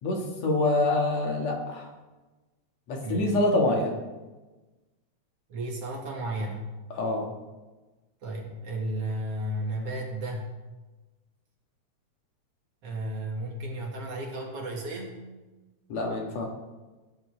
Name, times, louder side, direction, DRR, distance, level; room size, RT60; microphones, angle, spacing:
voice 1, 0.0-1.9 2.9-4.0 6.9-7.3 15.9-16.5, left 2 dB, 65° left, 1 dB, 2.9 m, -26 dB
voice 2, 5.5-6.7 8.2-10.5 12.8-15.2, right 1 dB, 55° right, 0 dB, 2.6 m, -33 dB
18.5 x 11.5 x 3.4 m, 1.2 s
omnidirectional pair, 3.3 m